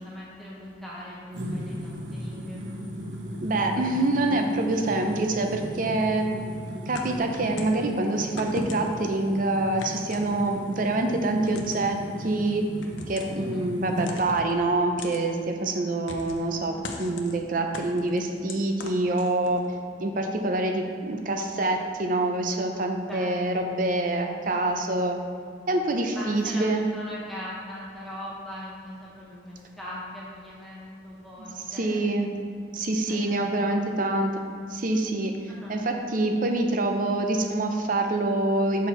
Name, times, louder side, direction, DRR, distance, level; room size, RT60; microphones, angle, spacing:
voice 1, 0.0-2.6 13.3-13.7 23.1-23.6 26.1-32.0 33.1-34.0 35.5-35.7, left 1 dB, ahead, -8 dB, 1.1 m, -40 dB
sound 1, 1.3-14.1, equal, 75° right, 0.9 m, -37 dB
voice 2, 3.4-6.3 6.9-12.6 13.1-19.6 20.0-25.2 25.7-26.8 31.7-32.3 32.7-34.4 34.7-35.4 35.7-38.9, right 2 dB, 45° right, 4 dB, 0.5 m, -26 dB
sound 2, 6.9-7.8 8.4-9.1 9.8-10.7 11.5-11.9 12.8-13.4 14.0-14.5 15.0-15.2 16.1-16.5 16.8-17.3 17.7-19.6, left 2 dB, 75° left, 0.6 m, -38 dB
6.1 x 4.4 x 4.3 m, 2.2 s
head